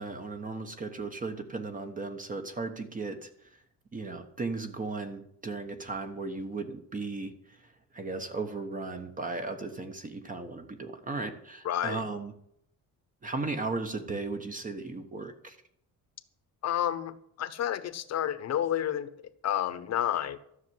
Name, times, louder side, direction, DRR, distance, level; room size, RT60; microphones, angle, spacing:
voice 1, 0.0-3.3 3.9-7.6 7.9-12.3 13.2-15.6, right 3 dB, 25° right, 6 dB, 1.2 m, -36 dB
voice 2, 11.6-12.0 16.6-19.1 19.4-20.4, left 11 dB, 50° left, 12 dB, 1.1 m, -30 dB
13.0 x 6.7 x 9.5 m, 0.72 s
cardioid pair, 155°, 34 cm